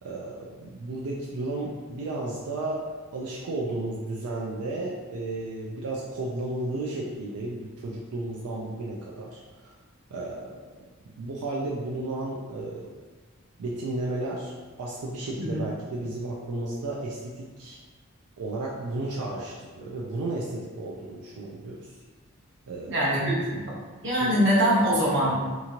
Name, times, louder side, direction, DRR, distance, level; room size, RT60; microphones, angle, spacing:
voice 1, 0.0-2.8 3.1-9.7 10.1-10.5 11.2-12.9 13.6-14.5 14.8-17.8 18.4-22.0 22.7-23.0 23.4-23.5 24.2-24.4, right 2 dB, 85° right, -3 dB, 0.4 m, -33 dB
voice 2, 22.9-23.7 24.0-25.4, equal, 55° right, -7 dB, 0.9 m, -23 dB
2.9 x 2.4 x 2.8 m, 1.4 s
head